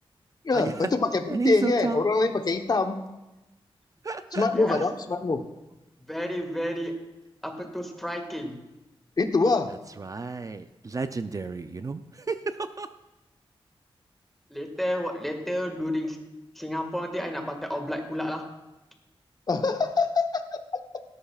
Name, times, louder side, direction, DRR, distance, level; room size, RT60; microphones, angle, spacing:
voice 1, 0.4-3.0 4.3-5.4 9.2-9.7 19.5-20.3, left 3 dB, 40° left, 6 dB, 1.0 m, -24 dB
voice 2, 1.3-2.1 4.0-4.8 10.0-12.9, right 3 dB, 35° right, 10 dB, 0.5 m, -31 dB
voice 3, 4.5-4.8 6.1-6.9 7.4-8.6 14.5-16.2 16.5-18.4, equal, ahead, 3 dB, 1.8 m, -31 dB
17.0 x 13.0 x 2.4 m, 1.0 s
wide cardioid pair, 120°, 10 cm